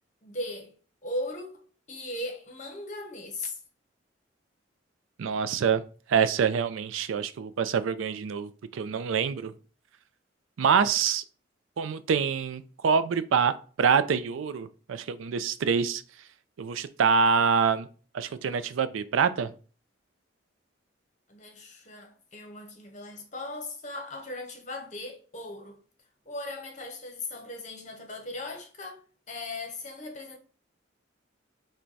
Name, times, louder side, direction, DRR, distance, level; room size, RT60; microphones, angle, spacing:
voice 1, 0.2-0.7 1.0-1.6 1.9-3.6 21.3-25.8 26.2-29.0 29.3-30.4, left 2 dB, 40° left, 0.9 m, -38 dB
voice 2, 5.2-5.8 6.1-9.5 10.6-11.2 11.8-16.0 16.6-17.9 18.1-19.5, right 6 dB, 85° right, 0.4 m, -26 dB
4.5 x 2.2 x 3.9 m
head